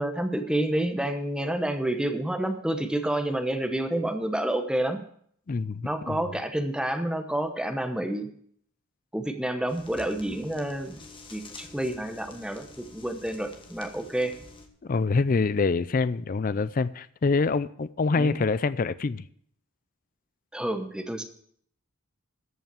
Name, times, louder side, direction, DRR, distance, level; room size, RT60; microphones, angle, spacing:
voice 1, 0.0-5.0 5.8-8.3 9.1-11.0 11.3-14.3 18.2-18.4 20.5-21.2, right 1 dB, 5° right, 5 dB, 1.0 m, -29 dB
voice 2, 5.5-6.2 14.8-19.2, left 4 dB, 40° left, 15 dB, 0.4 m, -25 dB
sound 1, 9.7-14.7, left 2 dB, 20° left, 1.3 m, -48 dB
14.0 x 5.7 x 7.5 m, 0.63 s
head